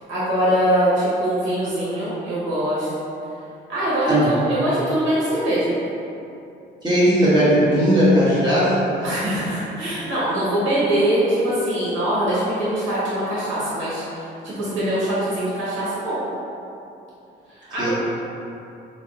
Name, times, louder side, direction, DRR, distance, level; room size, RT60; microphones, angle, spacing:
voice 1, 0.1-2.9 3.7-5.7 9.0-16.2 17.5-17.9, right 1 dB, 80° right, -9 dB, 1.1 m, -23 dB
voice 2, 6.8-8.7 17.8-17.9, equal, 20° right, -11 dB, 1.2 m, -17 dB
3.4 x 2.3 x 2.6 m, 2.8 s
cardioid pair, 90°, 20 cm